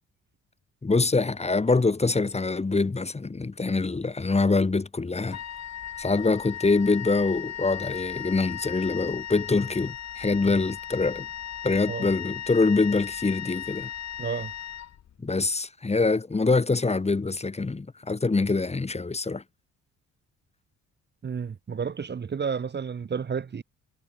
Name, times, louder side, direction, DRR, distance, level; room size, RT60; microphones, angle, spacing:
voice 1, 0.8-5.4 6.0-11.3 11.6-13.9 15.2-19.4, left 3 dB, 20° left, 2.3 m, -24 dB
Wind instrument woodwind instrument, 5.3-15.4, left 10 dB, 60° left, 2.6 m, -37 dB
voice 2, 14.2-14.5 21.2-23.6, right 6 dB, 35° right, 1.3 m, -31 dB
cardioid pair, 90°, 30 cm